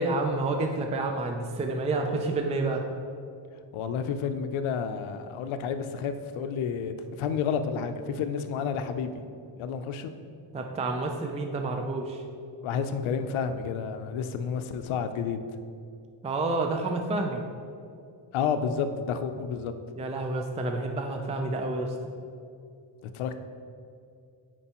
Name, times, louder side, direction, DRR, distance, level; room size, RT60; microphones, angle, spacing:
voice 1, 0.0-2.8 10.5-12.2 16.2-17.4 20.0-22.0, right 2 dB, 15° right, 3 dB, 0.4 m, -29 dB
voice 2, 3.7-9.1 9.6-10.1 12.6-15.4 18.3-19.7 23.0-23.4, left 6 dB, 85° left, 9 dB, 0.6 m, -30 dB
9.7 x 4.6 x 2.9 m, 2.5 s
cardioid pair, 120°, 47 cm